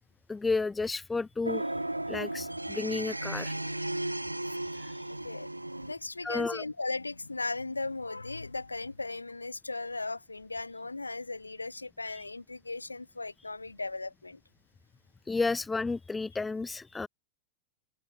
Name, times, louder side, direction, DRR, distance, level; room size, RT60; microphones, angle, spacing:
voice 1, 0.3-1.6 2.1-3.5 4.7-4.9 6.2-6.6 15.3-17.1, left 3 dB, 10° left, 3.2 m, -32 dB
sound 1, 1.4-5.9, right 1 dB, 85° right, 0.8 m, -35 dB
voice 2, 5.8-14.4, left 3 dB, 80° left, 2.6 m, -37 dB
figure-of-eight pair, 90°, 0 cm